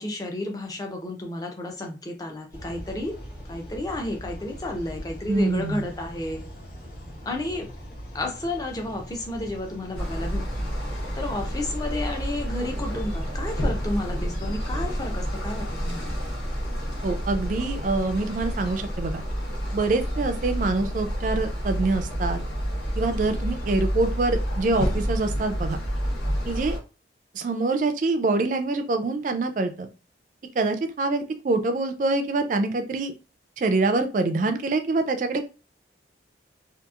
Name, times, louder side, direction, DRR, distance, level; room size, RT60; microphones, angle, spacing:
voice 1, 0.0-3.2 3.5-6.4 7.3-7.7 8.1-10.7 11.1-16.1, left 1 dB, 20° left, 2 dB, 0.5 m, -32 dB
sound 1, 2.5-17.6, equal, 45° left, 1.2 m, -41 dB
voice 2, 5.3-5.9 17.0-19.2 19.7-22.4 23.0-25.8 26.5-26.8 27.3-29.9 30.6-33.1 33.6-35.5, right 3 dB, 45° right, 7 dB, 0.3 m, -25 dB
sound 2, 9.9-26.8, equal, 70° left, 1.0 m, -29 dB
2.8 x 2.4 x 2.3 m, 0.32 s
head